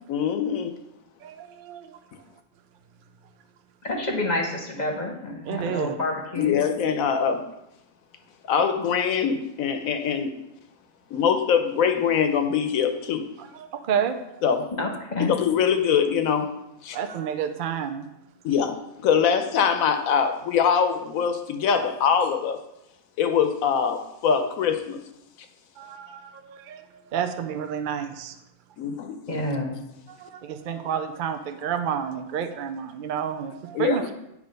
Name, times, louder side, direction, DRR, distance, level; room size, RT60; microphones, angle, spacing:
voice 1, 0.1-0.7 6.4-7.4 8.5-10.4 11.1-13.3 14.4-14.7 15.2-16.5 16.8-17.0 18.4-22.6 23.2-25.0 28.8-29.2 33.7-34.1, left 7 dB, 75° left, 7 dB, 1.1 m, -23 dB
voice 2, 1.2-2.0 5.4-6.0 13.4-14.4 16.9-18.1 21.7-21.9 25.8-28.4 30.1-34.1, right 8 dB, 70° right, 7 dB, 0.4 m, -30 dB
voice 3, 3.8-6.6 14.8-15.3 29.3-29.7, left 2 dB, 35° left, 1 dB, 1.0 m, -28 dB
8.5 x 3.2 x 5.2 m, 0.85 s
omnidirectional pair, 1.5 m